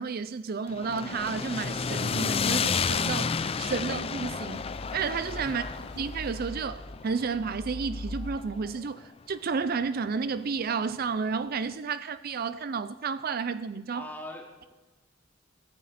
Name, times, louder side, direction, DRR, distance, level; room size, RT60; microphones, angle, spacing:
voice 1, 0.0-4.6 4.9-5.6 6.0-14.0, right 5 dB, 50° right, 0.5 m, -31 dB
sound 1, 0.7-8.9, left 5 dB, 30° left, 0.4 m, -31 dB
sound 2, 1.6-8.4, left 1 dB, 60° left, 1.3 m, -43 dB
voice 2, 5.4-5.8 13.9-14.7, left 1 dB, 10° left, 2.6 m, -43 dB
22.5 x 15.0 x 4.3 m
head